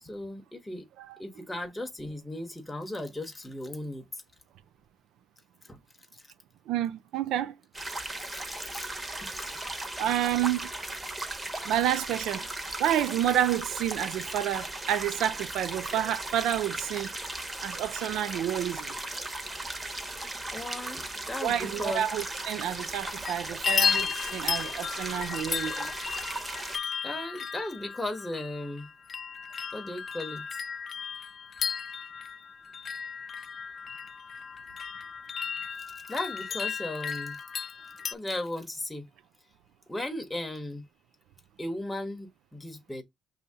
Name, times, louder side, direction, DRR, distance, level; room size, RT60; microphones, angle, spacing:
voice 1, 0.0-0.9 1.2-4.2 5.7-5.8 6.1-6.2 8.2-8.9 9.2-9.6 20.5-22.1 27.0-28.9 29.7-30.5 36.1-37.4 38.1-39.1 39.9-40.8 41.6-43.0, left 1 dB, 10° left, 1.0 m, -36 dB
voice 2, 6.7-7.5 10.0-10.7 11.6-12.5 12.8-17.1 17.6-18.9 21.4-25.9, right 11 dB, 85° right, 0.4 m, -29 dB
sound 1, 7.7-26.8, right 2 dB, 20° right, 1.2 m, -37 dB
sound 2, 23.0-23.3 23.6-38.1, left 7 dB, 50° left, 0.3 m, -34 dB
5.5 x 2.7 x 3.5 m
cardioid pair, 90°, 0 cm